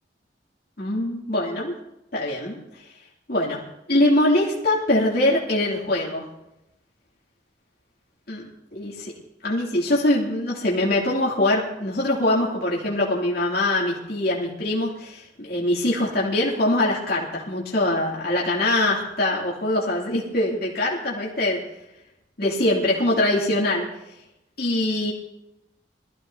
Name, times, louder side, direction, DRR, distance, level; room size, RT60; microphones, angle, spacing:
voice 1, 0.8-1.7 2.1-2.6 3.3-3.6 3.9-6.2 8.3-8.4 8.7-9.1 9.4-21.6 22.4-23.9 24.6-25.1, left 1 dB, 60° left, -5 dB, 2.8 m, -23 dB
22.5 x 15.0 x 2.8 m, 0.89 s
head